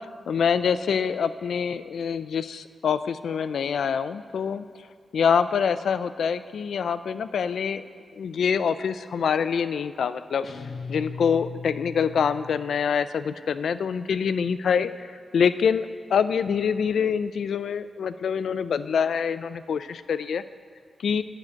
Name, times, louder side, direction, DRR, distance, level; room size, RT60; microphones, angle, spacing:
voice 1, 0.3-4.6 5.1-7.8 8.1-10.5 10.9-20.4 21.0-21.2, left 6 dB, 85° left, 13 dB, 0.4 m, -25 dB
sound 1, 10.4-13.0, left 5 dB, 55° left, 0.7 m, -38 dB
10.5 x 6.4 x 8.5 m, 2.1 s
wide cardioid pair, 130°, 0 cm